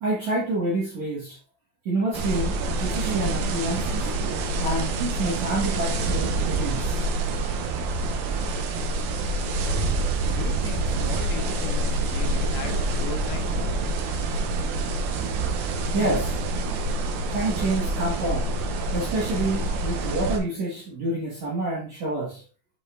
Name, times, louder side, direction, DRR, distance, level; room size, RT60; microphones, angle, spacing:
voice 1, 0.0-1.4 1.9-4.1 4.6-7.0 15.9-16.4 17.3-18.6 18.9-22.4, right 2 dB, 60° right, 1.9 m, -28 dB
sound 1, 2.1-20.4, right 2 dB, 85° right, 2.1 m, -26 dB
voice 2, 10.2-13.8, left 8 dB, 80° left, 3.5 m, -38 dB
8.2 x 5.5 x 2.4 m
omnidirectional pair, 5.6 m